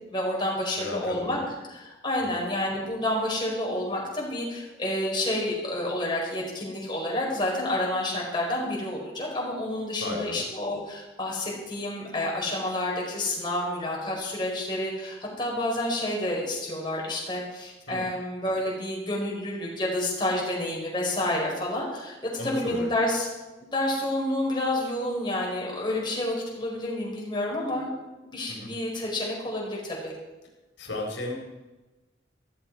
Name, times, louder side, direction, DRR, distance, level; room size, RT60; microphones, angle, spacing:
voice 1, 0.0-1.4 1.7-22.2 22.4-23.3 23.6-27.9 28.2-30.1, left 1 dB, 25° left, -3 dB, 4.8 m, -29 dB
voice 2, 0.8-1.5 2.2-2.4 10.0-10.4 17.9-18.1 22.4-22.9 28.5-28.7 30.8-31.4, left 2 dB, 75° left, 0 dB, 4.1 m, -34 dB
15.5 x 15.5 x 4.8 m, 1.1 s
head